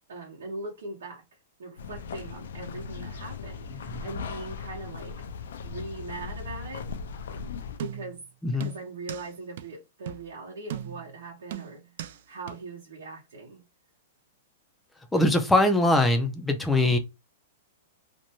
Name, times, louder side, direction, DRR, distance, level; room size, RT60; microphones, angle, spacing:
voice 1, 0.1-5.1 5.6-6.9 7.8-8.2 8.6-11.8 12.3-13.6, right 2 dB, 85° right, 0.9 m, -40 dB
sound 1, 1.8-7.8, left 5 dB, 80° left, 0.4 m, -38 dB
sound 2, 7.8-8.2 8.6-9.3 9.6-9.7 10.1-10.3 10.7-11.1 11.5-12.2 12.5-12.6, right 11 dB, 60° right, 0.3 m, -37 dB
voice 2, 15.1-17.0, left 1 dB, 5° left, 0.4 m, -22 dB
2.6 x 2.2 x 2.9 m
hypercardioid pair, 155°, 0 cm